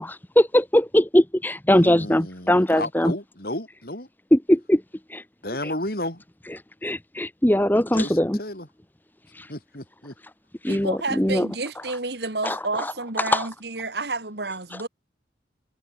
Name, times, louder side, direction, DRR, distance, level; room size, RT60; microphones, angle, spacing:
voice 1, 0.0-3.1 4.3-4.8 5.1-5.2 5.6-5.7 6.5-8.4 9.3-9.5 10.6-11.5 12.4-12.9 13.2-13.5 14.7-14.9, left 1 dB, 10° left, 1.0 m, -21 dB
voice 2, 1.7-4.1 5.4-6.2 7.9-8.7 9.5-10.1, left 1 dB, 55° left, 6.3 m, -33 dB
voice 3, 10.7-14.9, right 3 dB, 65° right, 2.5 m, -30 dB
head